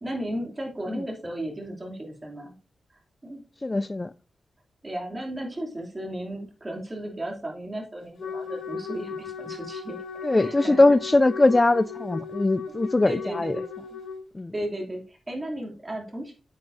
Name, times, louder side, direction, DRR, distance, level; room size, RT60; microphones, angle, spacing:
voice 1, 0.0-2.6 3.2-3.4 4.8-10.0 10.4-10.9 13.0-13.6 14.5-16.3, right 1 dB, 25° right, 2.8 m, -35 dB
voice 2, 3.6-4.1 10.2-13.6 14.3-14.5, left 2 dB, 25° left, 0.3 m, -21 dB
Wind instrument woodwind instrument, 8.2-14.2, left 5 dB, 75° left, 3.7 m, -37 dB
9.2 x 8.4 x 2.7 m
wide cardioid pair, 95°, 0 cm